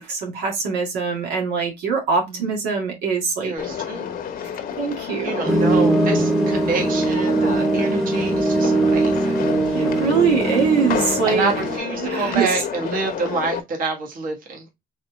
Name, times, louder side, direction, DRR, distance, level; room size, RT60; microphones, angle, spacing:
voice 1, 0.0-3.5 4.8-5.6 9.7-11.5 12.0-12.5, right 5 dB, 85° right, 1.8 m, -23 dB
voice 2, 3.4-4.1 5.2-9.9 11.3-14.7, right 3 dB, 55° right, 1.6 m, -27 dB
sound 1, 3.6-13.6, left 8 dB, 60° left, 0.9 m, -30 dB
sound 2, 5.5-11.8, right 2 dB, ahead, 1.0 m, -21 dB
4.1 x 3.4 x 3.2 m
cardioid pair, 110°, 17 cm